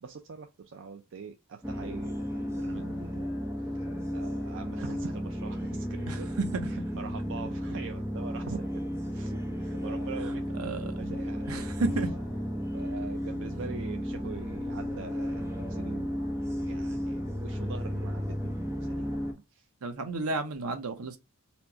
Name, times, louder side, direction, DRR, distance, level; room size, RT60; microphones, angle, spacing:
voice 1, 0.0-3.3 3.7-6.3 6.6-8.7 9.1-10.6 11.0-11.6 12.7-16.1 16.6-19.2 19.5-19.7, right 5 dB, 60° right, 0.5 m, -43 dB
sound 1, 1.6-19.3, equal, 10° right, 0.9 m, -33 dB
voice 2, 6.5-6.9 10.6-11.2 11.5-12.1 19.8-21.2, right 3 dB, 75° right, 0.8 m, -33 dB
4.3 x 2.3 x 2.7 m
head